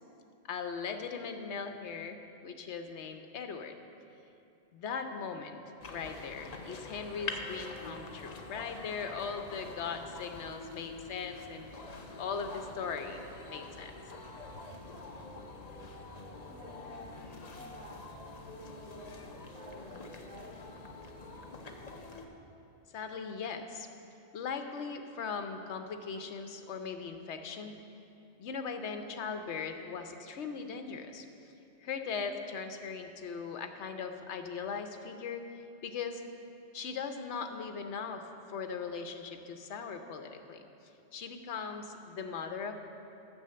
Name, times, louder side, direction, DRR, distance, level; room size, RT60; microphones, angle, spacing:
voice 1, 0.5-3.8 4.7-5.6 5.9-11.7 12.2-13.2 13.5-13.9 22.9-23.9 24.3-27.8 28.4-31.3 31.8-35.4 35.8-36.2 36.7-40.6 41.1-42.8, left 5 dB, 75° left, 6 dB, 1.1 m, -39 dB
sound 1, 5.8-22.3, left 3 dB, 40° left, 0.8 m, -46 dB
voice 2, 16.4-18.0 18.3-20.6, equal, 5° left, -9 dB, 2.0 m, -52 dB
9.8 x 6.4 x 7.6 m, 2.7 s
omnidirectional pair, 1.2 m